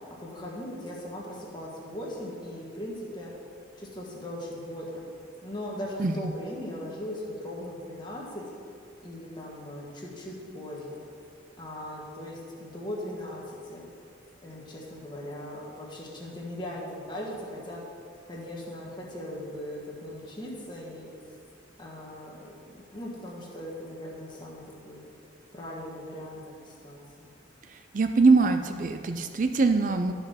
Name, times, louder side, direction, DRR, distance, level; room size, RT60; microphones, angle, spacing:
voice 1, 0.2-3.3 3.8-5.0 5.4-8.5 9.0-11.0 11.6-13.9 14.4-17.8 18.3-21.1 21.8-25.0 25.5-27.3, left 1 dB, 25° left, -3 dB, 1.7 m, -39 dB
voice 2, 27.7-30.1, right 3 dB, 45° right, 7 dB, 0.4 m, -23 dB
12.0 x 5.6 x 5.6 m, 2.3 s
head